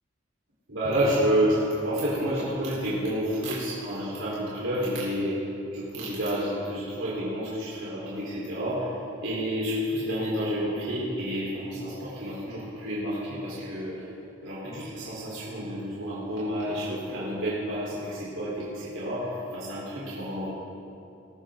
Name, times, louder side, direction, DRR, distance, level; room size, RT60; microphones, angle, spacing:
voice 1, 0.7-5.4 5.7-8.9 9.2-14.1 14.4-20.5, equal, 80° right, -8 dB, 4.2 m, -29 dB
22.5 x 13.5 x 3.9 m, 2.7 s
head